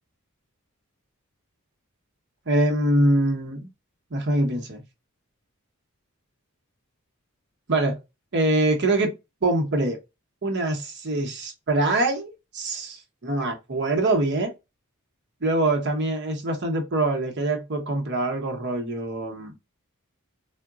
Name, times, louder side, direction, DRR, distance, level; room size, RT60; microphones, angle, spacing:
voice 1, 2.5-3.7 4.1-4.8 7.7-8.0 8.3-9.1 9.4-10.0 10.4-14.5 15.4-19.5, right 2 dB, 55° right, 0.8 m, -24 dB
3.7 x 2.2 x 2.3 m
head